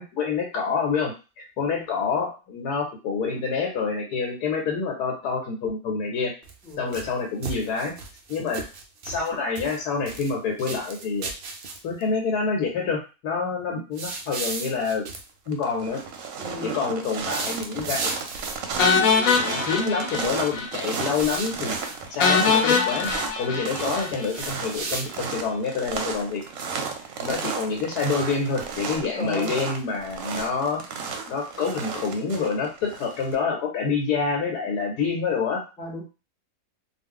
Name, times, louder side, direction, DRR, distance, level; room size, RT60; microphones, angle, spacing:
voice 1, 0.0-6.3 6.8-7.9 8.3-8.7 9.0-11.3 11.8-15.1 15.5-16.0 16.6-18.1 18.8-19.1 19.4-21.8 22.1-23.1 23.4-26.4 27.2-30.8 31.3-35.6, left 5 dB, 85° left, 0 dB, 1.2 m, -27 dB
sound 1, 6.4-7.1 7.4-9.3 9.5-10.3 10.6-12.0 13.9-15.2 17.1-18.7 20.8-22.0 23.7-25.4, right 4 dB, 85° right, 0.4 m, -35 dB
voice 2, 6.6-6.9 16.4-16.9 26.6-26.9 29.0-29.5 35.8-36.0, left 1 dB, 5° left, -2 dB, 0.5 m, -36 dB
footsteps boots heavy crunchy squeaky snow, 14.8-15.2 15.5-33.3, right 5 dB, 70° right, 0.9 m, -34 dB
sound 2, 18.8-20.7 21.0-21.1 21.4-21.5 22.2-24.5, left 5 dB, 70° left, 1.0 m, -22 dB
2.4 x 2.3 x 3.6 m, 0.32 s
omnidirectional pair, 1.6 m